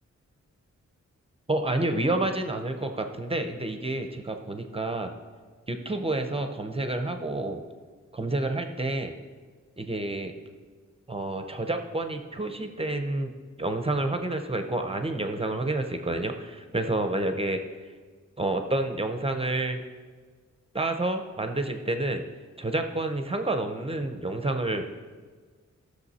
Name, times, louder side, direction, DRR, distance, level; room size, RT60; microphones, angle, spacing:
voice 1, 1.5-5.1 5.7-7.6 8.1-9.1 9.8-10.3 11.1-13.3 13.6-17.6 18.4-19.8 20.7-22.2 22.6-24.8, right 2 dB, 20° right, 6 dB, 0.6 m, -29 dB
15.0 x 6.5 x 4.2 m, 1.5 s
wide cardioid pair, 175°, 30 cm